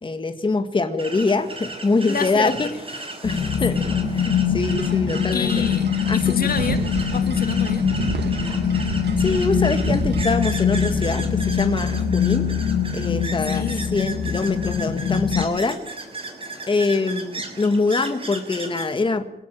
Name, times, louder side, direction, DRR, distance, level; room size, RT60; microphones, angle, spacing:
voice 1, 0.0-3.8 4.1-5.6 6.1-6.3 9.2-12.5 12.9-15.8 16.7-19.3, left 3 dB, 30° left, 7 dB, 1.8 m, -24 dB
sound 1, 1.0-18.8, right 2 dB, 30° right, 6.4 m, -36 dB
voice 2, 2.1-2.8 3.7-3.9 5.3-7.9 13.5-13.9, left 5 dB, 60° left, 9 dB, 2.3 m, -29 dB
sound 2, 3.2-15.4, left 7 dB, 75° left, 2.9 m, -23 dB
sound 3, 4.6-10.3, right 5 dB, 80° right, 2.0 m, -32 dB
25.0 x 18.0 x 9.1 m, 0.83 s
wide cardioid pair, 145°, 17 cm